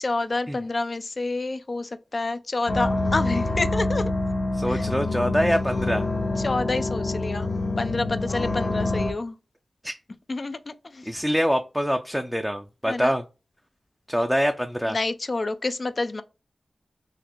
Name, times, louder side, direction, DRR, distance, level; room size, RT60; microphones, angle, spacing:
voice 1, 0.0-4.1 4.7-4.8 5.4-5.6 6.4-7.5 7.8-9.4 10.3-11.1 12.9-13.1 14.8-16.2, left 3 dB, 55° left, 0.4 m, -28 dB
sound 1, 2.7-9.1, left 2 dB, 80° left, 0.7 m, -26 dB
voice 2, 4.5-6.0 9.8-10.0 11.0-13.2 14.1-15.0, equal, ahead, 0.5 m, -25 dB
4.1 x 2.5 x 2.9 m
cardioid pair, 45°, 0 cm